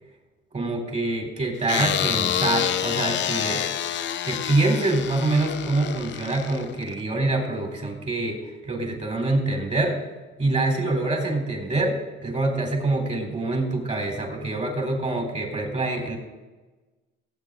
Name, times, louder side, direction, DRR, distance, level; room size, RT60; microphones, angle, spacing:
voice 1, 0.5-3.6 4.2-10.0 10.4-16.2, right 2 dB, 35° right, 2 dB, 3.7 m, -25 dB
sound 1, 1.7-7.0, left 10 dB, 65° left, 0.7 m, -27 dB
17.0 x 8.4 x 3.9 m, 1.2 s
cardioid pair, 90°, 20 cm